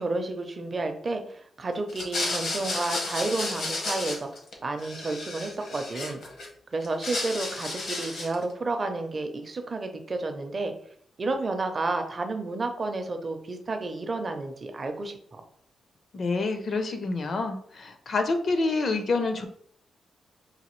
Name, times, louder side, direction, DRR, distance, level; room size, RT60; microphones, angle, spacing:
voice 1, 0.0-4.3 4.6-6.2 6.7-10.7 11.2-15.4, right 2 dB, 35° right, 6 dB, 0.5 m, -31 dB
sound 1, 1.9-4.5 4.8-6.5 6.8-8.4, left 2 dB, 70° left, 0.9 m, -32 dB
voice 2, 16.1-19.5, left 3 dB, 50° left, 7 dB, 0.5 m, -27 dB
4.0 x 2.6 x 3.0 m, 0.62 s
wide cardioid pair, 135°, 0 cm